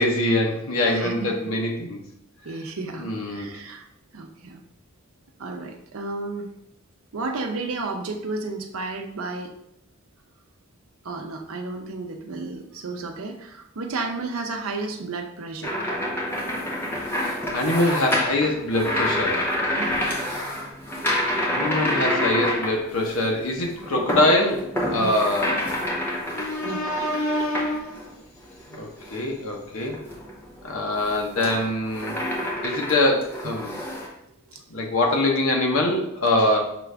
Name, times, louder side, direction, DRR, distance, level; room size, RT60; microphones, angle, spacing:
voice 1, 0.0-2.0 3.0-3.5 17.1-19.4 21.4-25.6 26.3-28.2 28.7-30.0 30.6-32.2 32.6-33.8 34.7-36.6, left 1 dB, 70° left, 0 dB, 0.9 m, -24 dB
voice 2, 0.8-1.3 2.4-3.8 4.1-4.6 5.4-6.5 7.1-9.6 11.0-15.8 19.7-20.1 25.0-25.2 26.6-26.8 34.5-34.9, right 3 dB, 70° right, 4 dB, 0.6 m, -32 dB
sound 1, 15.6-23.3 23.6-28.1 28.6-29.2 29.8-34.1, left 1 dB, 10° left, 0.7 m, -28 dB
5.8 x 2.4 x 3.3 m, 0.77 s
head